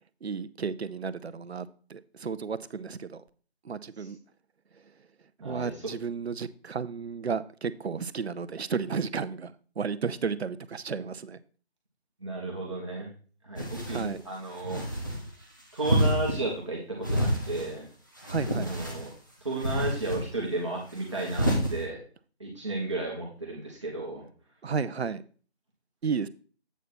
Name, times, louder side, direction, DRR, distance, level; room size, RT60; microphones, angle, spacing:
voice 1, 0.2-3.2 3.6-4.2 5.4-11.4 13.9-14.2 18.3-18.7 24.6-25.2 26.0-26.3, right 5 dB, 70° right, 0.6 m, -33 dB
voice 2, 5.4-5.9 12.2-13.1 13.4-14.8 15.7-17.9 18.6-19.1 19.4-22.0 22.4-24.2, right 2 dB, 25° right, 1.2 m, -33 dB
sound 1, 13.6-14.1 14.6-15.2 15.8-16.4 17.0-17.7 18.2-19.1 19.6-20.2 21.2-21.7, equal, 20° left, 0.8 m, -28 dB
8.2 x 4.4 x 4.2 m
figure-of-eight pair, 170°, 33 cm